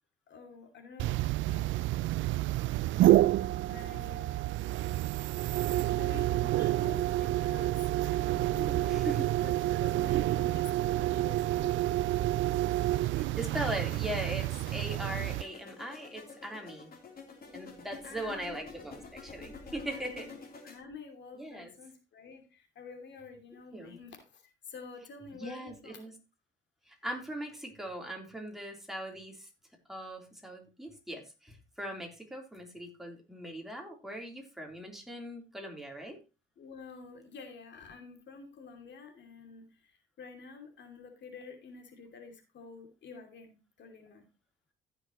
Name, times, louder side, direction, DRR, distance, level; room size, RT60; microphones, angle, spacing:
voice 1, 0.3-1.9 3.7-4.4 5.7-9.1 9.4-11.7 18.0-18.7 19.6-26.1 36.6-44.3, left 5 dB, 65° left, 4 dB, 2.6 m, -49 dB
sound 1, 1.0-15.4, right 15 dB, 80° right, 0.4 m, -29 dB
voice 2, 8.6-9.3 13.4-16.9 17.5-20.3 21.4-21.7 23.7-24.0 25.3-26.2 26.9-29.5 29.9-36.2, right 1 dB, ahead, 0 dB, 3.5 m, -40 dB
sound 2, 12.8-20.8, left 4 dB, 50° left, 3.4 m, -49 dB
15.5 x 6.7 x 3.0 m, 0.29 s
cardioid pair, 90°, 20 cm